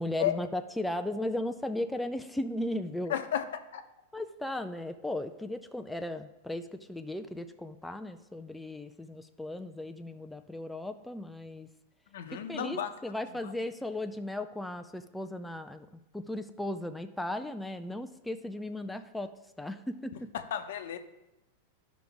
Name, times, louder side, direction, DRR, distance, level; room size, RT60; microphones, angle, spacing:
voice 1, 0.0-3.1 4.1-11.7 12.3-15.9 16.1-19.3 19.6-20.3, left 1 dB, 5° left, 7 dB, 0.3 m, -36 dB
voice 2, 3.1-3.4 3.7-3.8 12.1-12.9 13.4-13.5 20.3-21.0, left 10 dB, 75° left, 7 dB, 0.8 m, -32 dB
12.0 x 5.1 x 3.5 m, 0.97 s
supercardioid pair, 140°, 0 cm